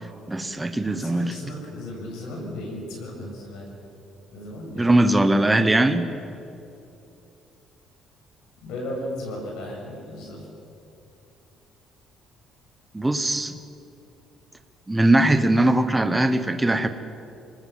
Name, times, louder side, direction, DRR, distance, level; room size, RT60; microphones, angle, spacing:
voice 1, 0.3-1.3 4.7-6.1 12.9-13.6 14.9-16.9, right 1 dB, 10° right, 9 dB, 1.1 m, -20 dB
voice 2, 1.0-3.7 4.3-5.0 8.6-10.5, left 1 dB, 90° left, -1 dB, 7.2 m, -35 dB
26.0 x 20.0 x 7.6 m, 2.8 s
cardioid pair, 175°, 0 cm